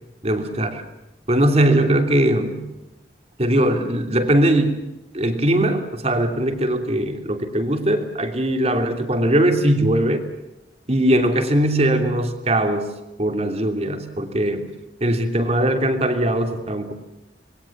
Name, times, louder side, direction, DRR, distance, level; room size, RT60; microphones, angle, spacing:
voice 1, 0.2-0.8 1.3-2.6 3.4-4.8 5.1-10.2 10.9-12.9 13.2-14.7 15.0-16.9, right 1 dB, 35° right, 6 dB, 3.0 m, -20 dB
27.0 x 22.0 x 7.4 m, 1.0 s
head